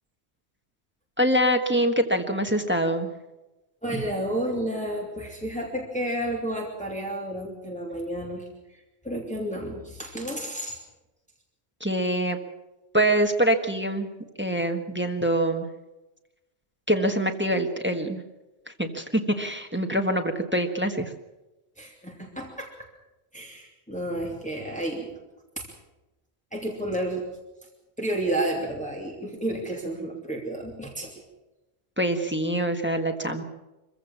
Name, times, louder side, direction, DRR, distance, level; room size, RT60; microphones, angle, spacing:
voice 1, 1.2-3.1 11.8-12.4 12.9-14.1 14.4-15.7 16.9-18.2 18.8-21.1 32.0-33.4, right 1 dB, 10° right, 5 dB, 1.4 m, -24 dB
voice 2, 3.8-10.8 21.8-22.7 23.3-25.1 25.6-25.7 26.5-27.2 28.0-31.1, right 1 dB, 5° left, -1 dB, 2.8 m, -31 dB
24.5 x 15.5 x 7.3 m, 1.0 s
omnidirectional pair, 1.1 m